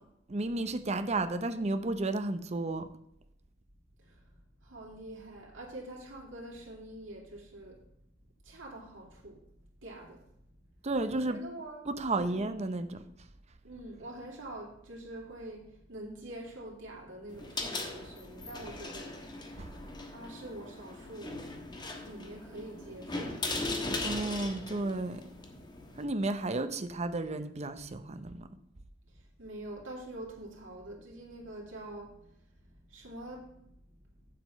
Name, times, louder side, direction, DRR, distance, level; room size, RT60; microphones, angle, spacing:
voice 1, 0.3-2.9 10.8-11.4 11.9-13.0 19.6-19.7 24.0-25.2 26.0-28.5, right 2 dB, 35° right, 0.7 m, -32 dB
voice 2, 4.6-7.8 8.4-9.4 9.8-10.2 11.1-11.9 12.1-12.5 13.6-19.2 20.1-21.7 22.0-23.5 29.4-32.3 32.6-33.6, right 1 dB, 80° right, 2.7 m, -45 dB
sound 1, 17.3-26.0, left 2 dB, 25° left, 1.4 m, -39 dB
7.7 x 7.6 x 5.2 m
head